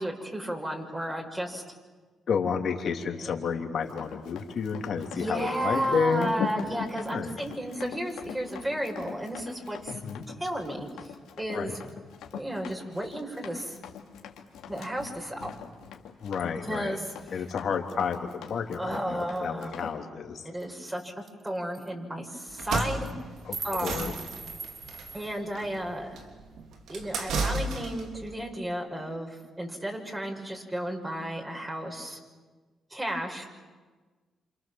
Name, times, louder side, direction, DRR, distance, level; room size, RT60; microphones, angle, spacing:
voice 1, 0.0-1.6 5.1-10.0 10.4-10.9 11.4-11.7 12.3-13.8 14.7-15.6 16.6-17.1 17.3-17.4 18.8-19.7 20.4-21.1 21.4-23.1 23.6-24.1 25.1-26.1 26.9-32.2 32.9-33.5, right 1 dB, 20° right, 1 dB, 6.7 m, -33 dB
voice 2, 2.3-6.3 7.1-7.4 9.9-10.2 11.5-11.7 16.2-17.0 17.3-20.5 23.4-24.1, left 6 dB, 65° left, 3 dB, 3.4 m, -31 dB
Run, 3.9-20.0, left 8 dB, 85° left, 2.8 m, -42 dB
sound 1, 20.6-20.7 21.0-21.1 21.3-21.5 21.7-21.9 22.5-22.7 23.1-25.4, right 5 dB, 45° right, 1.3 m, -40 dB
sound 2, 22.5-28.2, right 3 dB, 80° right, 3.2 m, -33 dB
28.5 x 27.5 x 7.5 m, 1.4 s
supercardioid pair, 60°, 0 cm